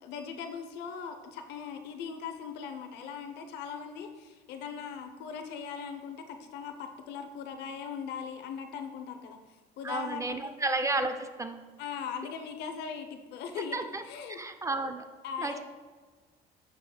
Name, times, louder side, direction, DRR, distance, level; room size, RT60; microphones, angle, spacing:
voice 1, 0.0-9.4 9.8-10.5 11.8-13.8 14.0-14.4 15.2-15.6, left 7 dB, 85° left, 6 dB, 0.7 m, -39 dB
voice 2, 9.8-11.6 13.7-14.0 14.3-15.0 15.4-15.6, right 2 dB, 20° right, 8 dB, 0.4 m, -32 dB
8.3 x 5.8 x 2.3 m, 1.5 s
cardioid pair, 110°, 17 cm